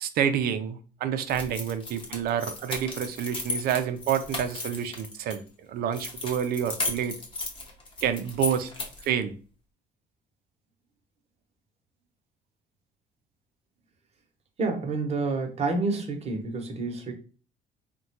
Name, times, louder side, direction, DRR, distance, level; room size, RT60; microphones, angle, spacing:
voice 1, 0.0-5.4 5.7-7.2 8.0-8.7 9.0-9.3, right 9 dB, 65° right, 0.4 m, -28 dB
sound 1, 1.3-5.4 5.9-9.1, left 3 dB, 30° left, 0.8 m, -35 dB
voice 2, 14.6-17.1, right 3 dB, 40° right, 0.9 m, -28 dB
3.6 x 2.2 x 2.8 m
cardioid pair, 110°, 17 cm